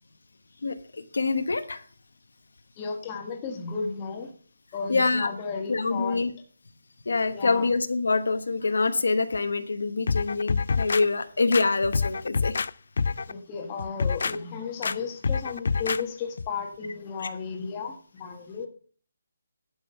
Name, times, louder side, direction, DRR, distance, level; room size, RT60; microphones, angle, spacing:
voice 1, 0.6-1.8 4.9-5.3 5.7-6.3 7.1-12.6 17.2-17.3, left 3 dB, 80° left, 9 dB, 1.1 m, -25 dB
voice 2, 2.8-4.3 4.7-6.2 7.3-7.7 13.3-18.7, left 5 dB, 15° left, 2 dB, 1.3 m, -34 dB
sound 1, 10.1-11.0 11.5-12.7 13.0-13.3 13.8-14.3 14.8-15.0 15.2-16.0 16.4-16.5, left 5 dB, 55° left, 0.3 m, -27 dB
11.5 x 6.1 x 5.6 m, 0.43 s
hypercardioid pair, 175°, 0 cm